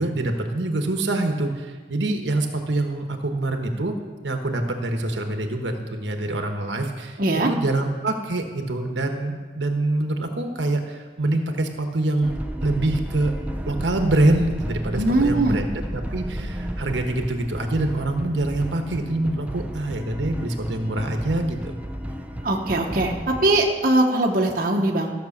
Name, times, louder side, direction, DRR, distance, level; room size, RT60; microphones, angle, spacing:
voice 1, 0.0-3.9 4.2-7.2 7.5-12.3 12.6-13.3 13.6-15.6 15.9-21.8, right 2 dB, 85° right, 5 dB, 1.2 m, -25 dB
voice 2, 7.2-7.5 14.9-15.6 22.4-25.1, right 2 dB, 50° right, 0 dB, 1.1 m, -21 dB
sound 1, 12.2-23.6, equal, 10° right, 0.6 m, -32 dB
13.5 x 6.2 x 7.2 m, 1.4 s
head